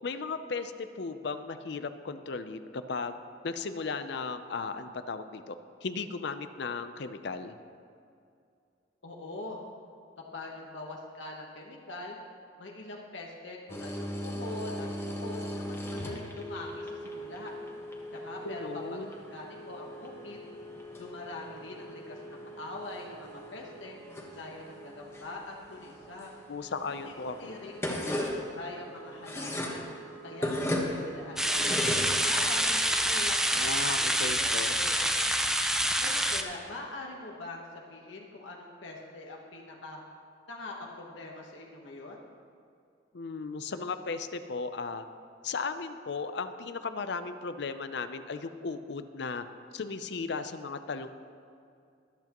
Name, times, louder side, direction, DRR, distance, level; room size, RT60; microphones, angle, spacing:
voice 1, 0.0-3.1 3.4-5.6 5.8-7.6 18.4-19.1 26.5-27.6 33.5-34.8 43.1-45.1 45.4-49.4 49.7-51.1, left 4 dB, 60° left, 10 dB, 0.5 m, -36 dB
voice 2, 9.0-9.6 10.3-12.2 12.6-17.5 18.1-20.4 21.0-24.0 24.3-26.3 27.0-29.9 30.2-33.6 33.8-35.0 36.0-40.0 40.5-42.2, left 2 dB, 80° left, -1 dB, 1.2 m, -43 dB
sound 1, 13.7-32.9, equal, 15° left, 1.3 m, -38 dB
sound 2, 31.4-36.4, right 1 dB, 5° right, 0.5 m, -27 dB
23.0 x 8.2 x 3.0 m, 2.4 s
head